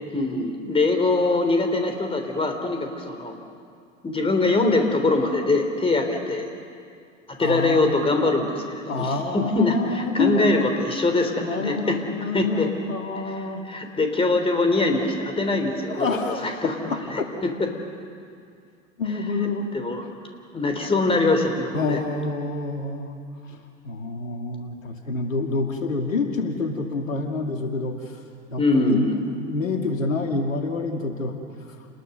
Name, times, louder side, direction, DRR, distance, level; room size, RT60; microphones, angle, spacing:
voice 1, 0.1-3.4 4.0-6.5 7.4-12.0 12.3-12.7 13.7-17.7 19.7-20.0 20.5-22.0 28.6-29.2, left 2 dB, 15° left, 4 dB, 3.4 m, -23 dB
voice 2, 7.4-7.9 8.9-10.7 11.4-13.7 15.8-17.0 19.0-19.7 21.7-23.2 23.5-28.2 28.5-31.4, left 3 dB, 80° left, 3 dB, 2.4 m, -27 dB
29.0 x 21.0 x 6.7 m, 2.3 s
figure-of-eight pair, 90°, 39 cm